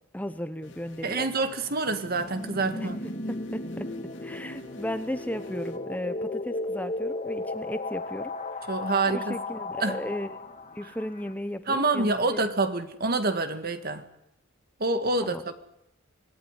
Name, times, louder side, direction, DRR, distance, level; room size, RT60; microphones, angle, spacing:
voice 1, 0.1-1.3 2.8-2.9 3.3-3.9 4.2-8.3 9.1-10.4 10.7-12.4 15.2-15.4, left 1 dB, 5° left, 1.1 m, -35 dB
sound 1, 0.6-5.8, left 1 dB, 60° left, 3.1 m, -51 dB
voice 2, 1.0-3.0 8.7-9.4 9.8-10.0 11.7-14.0 14.8-15.5, right 3 dB, 45° right, 2.0 m, -27 dB
sound 2, 1.9-11.3, left 2 dB, 35° left, 1.8 m, -35 dB
26.0 x 19.0 x 9.9 m
head